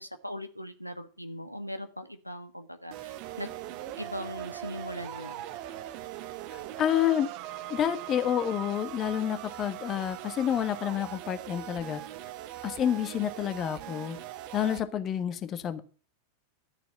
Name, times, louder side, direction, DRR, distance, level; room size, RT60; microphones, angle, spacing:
voice 1, 0.0-3.5 4.0-5.4, equal, 90° left, 7 dB, 1.2 m, -40 dB
sound 1, 2.9-14.8, right 13 dB, 45° right, 1.0 m, -41 dB
voice 2, 6.5-7.3 7.7-12.0 12.6-14.2 14.5-15.8, left 10 dB, 30° left, 11 dB, 1.4 m, -29 dB
13.0 x 6.8 x 7.6 m, 0.38 s
figure-of-eight pair, 90°, 0 cm